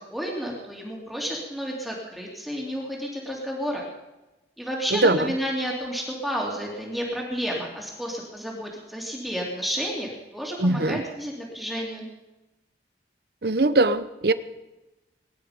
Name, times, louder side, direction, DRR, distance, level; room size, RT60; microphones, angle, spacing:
voice 1, 0.1-3.8 4.6-12.1, equal, ahead, -2 dB, 3.0 m, -31 dB
voice 2, 4.9-5.3 10.6-11.0 13.4-14.3, right 2 dB, 65° right, 13 dB, 0.8 m, -21 dB
22.5 x 11.5 x 5.2 m, 1.0 s
head